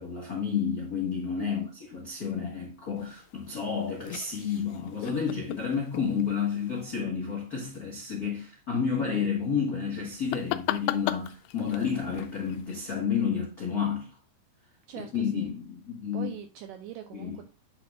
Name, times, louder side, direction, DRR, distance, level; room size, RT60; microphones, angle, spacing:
voice 1, 0.0-14.2 14.9-16.3 17.1-17.3, left 6 dB, 70° left, 0.8 m, -30 dB
voice 2, 1.4-1.7 14.9-15.5 16.1-17.4, right 11 dB, 85° right, 1.9 m, -42 dB
sound 1, 3.0-6.9 10.1-12.9, left 14 dB, 90° left, 2.5 m, -37 dB
8.5 x 6.2 x 2.4 m
omnidirectional pair, 4.3 m